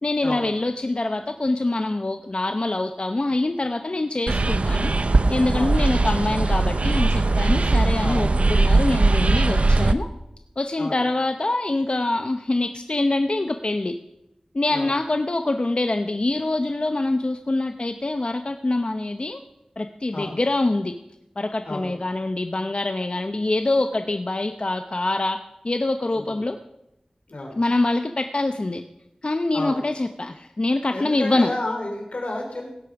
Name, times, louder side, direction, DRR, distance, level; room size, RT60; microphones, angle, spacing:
voice 1, 0.0-4.9 5.3-10.1 10.6-13.9 14.5-19.4 19.8-20.9 21.4-25.4 25.6-26.6 27.6-28.8 29.2-31.5, left 2 dB, 55° left, 7 dB, 0.7 m, -24 dB
sound 1, 4.3-9.9, right 3 dB, 75° right, 0.6 m, -20 dB
voice 2, 8.0-8.3 10.8-11.0 14.7-14.9 20.1-20.3 21.6-21.9 26.1-26.4 27.3-27.6 29.5-29.8 30.9-32.7, left 2 dB, 90° left, 1 dB, 3.2 m, -31 dB
16.5 x 8.6 x 5.9 m, 0.86 s
wide cardioid pair, 60°, 2 cm